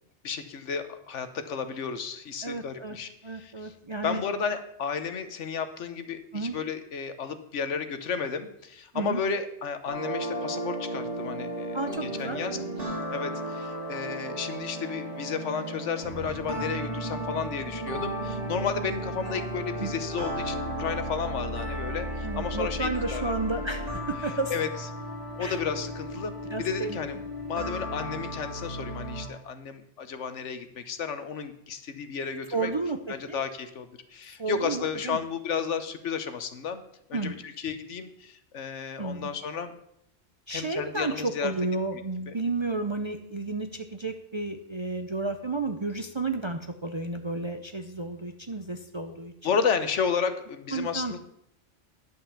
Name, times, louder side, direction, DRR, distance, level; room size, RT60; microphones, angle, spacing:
voice 1, 0.2-3.7 4.0-23.4 24.5-24.7 25.4-27.2 27.5-32.7 33.1-36.8 37.1-39.7 40.5-41.5 42.3-42.4 49.1-49.2 49.4-51.2, left 6 dB, 75° left, 10 dB, 1.2 m, -32 dB
voice 2, 2.4-3.0 3.2-4.2 6.3-6.6 8.9-9.2 11.7-12.6 19.8-20.0 22.2-24.5 25.4-25.6 26.5-27.0 32.5-33.0 33.3-33.4 34.4-35.2 37.1-37.4 39.0-39.3 40.5-49.3 50.7-51.1, right 3 dB, 30° right, 5 dB, 0.5 m, -32 dB
sound 1, 9.9-29.3, right 1 dB, 80° right, 3.1 m, -34 dB
11.0 x 5.6 x 7.1 m, 0.73 s
omnidirectional pair, 1.2 m